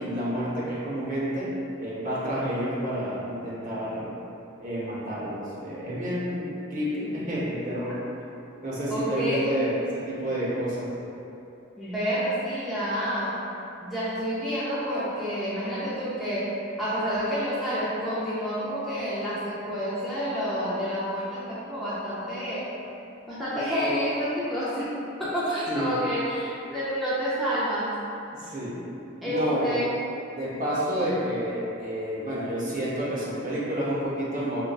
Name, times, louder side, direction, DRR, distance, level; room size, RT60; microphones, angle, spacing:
voice 1, 0.0-1.5 1.8-4.1 4.6-8.0 8.6-10.9 25.7-25.9 28.4-28.8 29.2-29.8 30.3-34.6, equal, 40° right, -8 dB, 0.8 m, -29 dB
voice 2, 8.9-9.5 11.8-13.4 13.8-22.7 23.3-28.0 29.2-29.9, equal, ahead, -12 dB, 0.4 m, -29 dB
5.1 x 2.2 x 2.3 m, 2.8 s
head